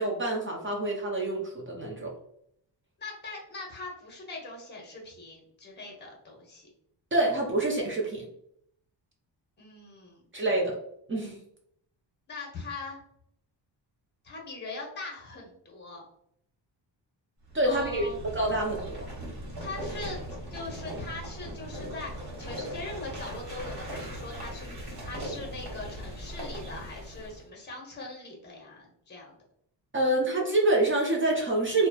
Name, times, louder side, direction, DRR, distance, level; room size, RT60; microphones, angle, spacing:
voice 1, 0.0-2.1 7.1-8.3 10.3-10.8 11.1-11.4 17.5-18.1 18.3-19.1 29.9-31.9, right 2 dB, 30° right, -2 dB, 0.5 m, -26 dB
voice 2, 3.0-6.7 9.6-10.2 12.3-13.0 14.2-16.0 17.6-18.2 19.6-20.2 20.5-29.4, left 3 dB, 25° left, -1 dB, 0.8 m, -41 dB
sound 1, 17.5-27.4, right 1 dB, 55° right, 1.1 m, -39 dB
2.9 x 2.1 x 2.2 m, 0.71 s
wide cardioid pair, 140°, 44 cm